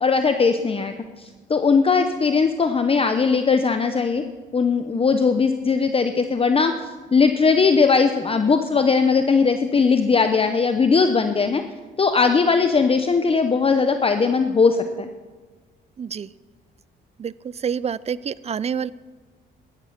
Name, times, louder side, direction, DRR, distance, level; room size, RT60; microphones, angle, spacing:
voice 1, 0.0-4.2 4.5-6.7 7.1-11.6 12.0-15.1, left 5 dB, 30° left, 7 dB, 0.8 m, -19 dB
voice 2, 16.0-16.3 17.2-17.3 17.6-18.9, right 7 dB, 30° right, 20 dB, 0.4 m, -27 dB
14.5 x 12.5 x 5.9 m, 1.4 s
cardioid pair, 90°, 20 cm